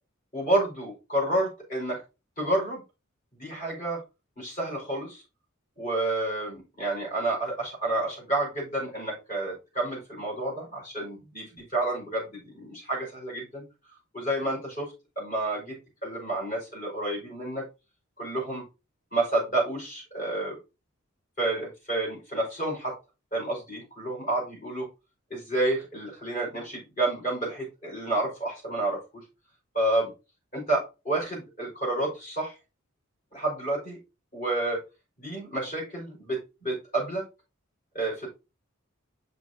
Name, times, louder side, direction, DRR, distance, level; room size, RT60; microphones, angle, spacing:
voice 1, 0.3-2.0 2.4-2.8 3.4-4.0 4.4-5.2 5.8-13.6 14.1-15.7 16.0-17.6 18.2-18.6 19.1-20.6 21.4-23.0 23.3-24.9 25.3-29.2 29.7-30.1 30.5-32.6 33.3-34.0 34.3-34.8 35.2-37.2 37.9-38.3, right 2 dB, 40° left, -3 dB, 4.8 m, -30 dB
6.3 x 5.6 x 3.9 m, 0.28 s
head